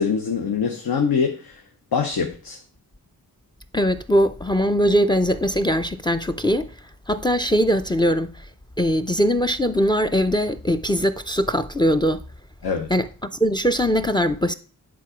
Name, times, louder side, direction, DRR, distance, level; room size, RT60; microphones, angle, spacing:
voice 1, 0.0-1.6 1.9-2.6 12.6-12.9, left 6 dB, 70° left, 1.0 m, -23 dB
voice 2, 3.7-6.7 7.1-8.3 8.8-12.2 12.9-14.5, equal, 15° left, 0.4 m, -21 dB
9.6 x 3.8 x 5.0 m
wide cardioid pair, 85°, 37 cm